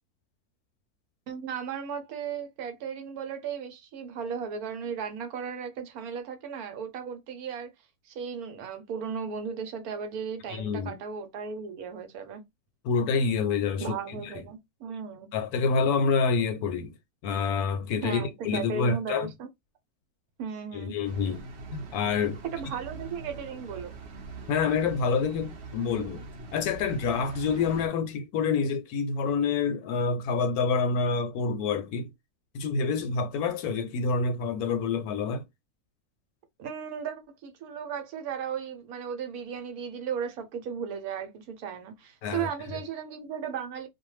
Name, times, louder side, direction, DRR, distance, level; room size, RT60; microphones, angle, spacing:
voice 1, 1.3-7.7 8.1-12.4 13.8-15.3 18.0-19.5 20.4-20.9 22.5-24.0 36.6-43.9, right 7 dB, 70° right, 1.1 m, -36 dB
voice 2, 10.5-10.9 12.8-14.0 14.3-14.4 15.3-17.0 17.2-19.3 20.7-21.4 21.7-22.4 24.5-26.2 26.5-32.1 32.5-35.4 42.2-42.5, left 5 dB, 75° left, 1.0 m, -27 dB
sound 1, 21.0-27.9, right 3 dB, 55° right, 0.8 m, -43 dB
2.5 x 2.2 x 3.0 m
omnidirectional pair, 1.7 m